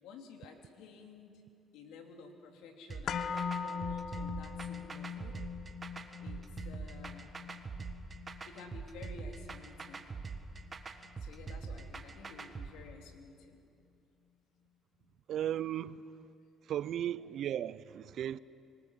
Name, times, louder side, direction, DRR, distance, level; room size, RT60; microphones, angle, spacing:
voice 1, 0.0-1.4 1.7-5.4 6.2-7.3 8.5-10.0 11.2-13.6 16.4-16.5, left 4 dB, 85° left, 2.9 m, -52 dB
sound 1, 2.9-12.7, right 4 dB, 30° right, 1.6 m, -43 dB
sound 2, 3.1-11.1 11.5-11.6, left 6 dB, 55° left, 0.9 m, -41 dB
voice 2, 15.3-16.1 16.6-18.4, right 11 dB, 65° right, 0.6 m, -36 dB
25.0 x 20.0 x 7.5 m
cardioid pair, 95°, 0 cm